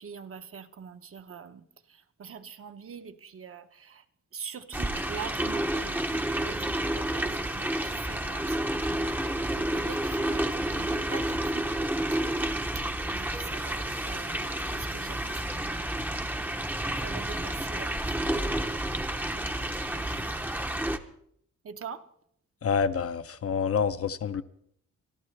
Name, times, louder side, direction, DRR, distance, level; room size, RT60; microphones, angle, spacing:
voice 1, 0.0-4.0 4.3-11.7 12.7-16.1 17.0-18.9 19.3-20.4 21.6-22.1, right 6 dB, 45° right, 0.8 m, -44 dB
sound 1, 4.7-21.0, right 1 dB, 5° right, 0.6 m, -30 dB
voice 2, 22.6-24.4, left 6 dB, 50° left, 0.6 m, -27 dB
24.5 x 13.0 x 3.2 m
wide cardioid pair, 165°, 30 cm